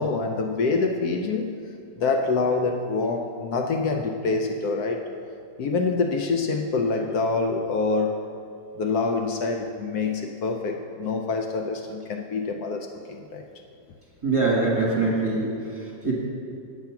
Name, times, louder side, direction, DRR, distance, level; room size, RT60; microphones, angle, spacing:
voice 1, 0.0-1.5 2.0-5.0 5.6-8.2 8.8-13.4, left 3 dB, 70° left, 3 dB, 1.1 m, -26 dB
voice 2, 14.2-16.2, right 3 dB, 20° right, -4 dB, 1.5 m, -24 dB
8.1 x 8.1 x 5.8 m, 2.5 s
omnidirectional pair, 1.8 m